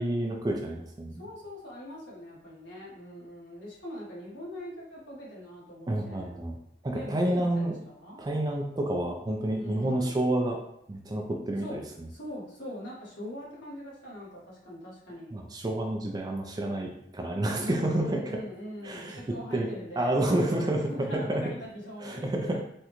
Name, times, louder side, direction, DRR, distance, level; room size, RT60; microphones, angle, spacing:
voice 1, 0.0-1.3 5.9-6.6 6.8-7.7 8.2-10.6 10.9-11.8 15.3-18.3 18.8-19.2 19.5-19.7 20.0-21.4 22.0-22.6, right 1 dB, 20° right, 2 dB, 0.3 m, -29 dB
voice 2, 1.2-6.4 6.9-8.2 9.6-10.2 11.6-11.8 12.1-15.4 17.6-22.6, left 1 dB, 70° left, -5 dB, 1.2 m, -42 dB
3.6 x 2.2 x 2.9 m, 0.73 s
head